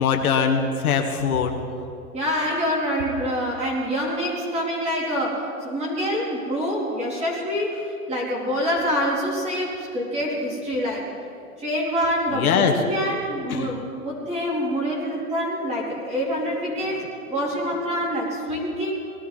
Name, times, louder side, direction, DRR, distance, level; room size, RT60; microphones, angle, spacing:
voice 1, 0.0-1.6 12.3-12.7 13.5-13.7, left 6 dB, 70° left, 4 dB, 1.7 m, -21 dB
voice 2, 2.1-7.8 8.1-11.1 11.6-17.0 17.3-18.9, equal, 15° right, -4 dB, 3.4 m, -26 dB
20.0 x 12.5 x 4.1 m, 2.6 s
hypercardioid pair, 150°, 45 cm